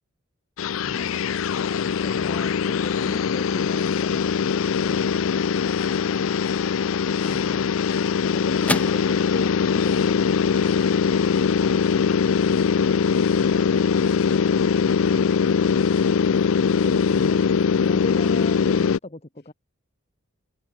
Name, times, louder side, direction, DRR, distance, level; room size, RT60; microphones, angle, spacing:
sound 1, 0.6-19.0, left 6 dB, 90° left, 0.4 m, -21 dB
voice 1, 0.8-1.4 12.4-13.5 14.3-14.5 14.9-16.4, left 1 dB, 50° left, 4.6 m, -45 dB
voice 2, 2.0-5.0 7.2-7.7 17.8-19.5, left 1 dB, 30° left, 1.7 m, -37 dB
sound 2, 7.4-15.9, left 1 dB, 5° left, 6.1 m, -38 dB
open air
head